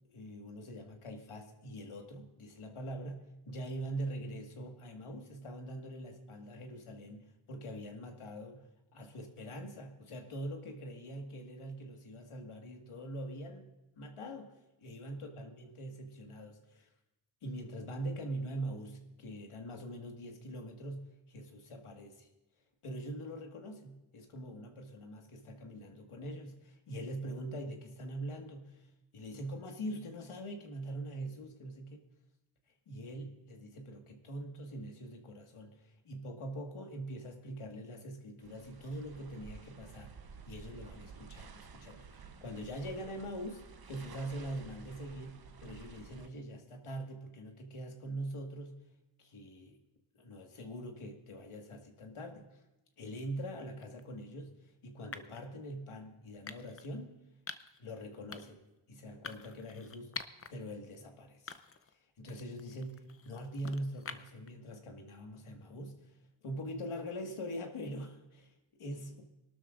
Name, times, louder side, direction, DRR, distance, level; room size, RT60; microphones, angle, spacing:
voice 1, 0.1-8.6 8.9-13.7 14.0-14.5 14.8-16.9 17.4-22.3 22.8-28.9 29.1-32.0 32.9-40.1 40.5-48.7 49.2-49.8 50.2-52.6 53.0-54.5 54.8-57.2 57.8-58.6 58.9-60.1 60.5-61.6 62.2-66.2 66.4-69.2, right 1 dB, 80° left, 2 dB, 1.9 m, -43 dB
sound 1, 38.4-46.3, right 5 dB, 50° right, 0.9 m, -52 dB
sound 2, 53.8-54.0 55.1-55.4 56.5-56.9 57.5-57.8 58.3-58.7 59.2-60.5 60.9-61.0 61.5-61.9 62.3-64.5, left 5 dB, 30° left, 0.6 m, -46 dB
24.0 x 12.5 x 2.5 m, 0.94 s
wide cardioid pair, 115°, 49 cm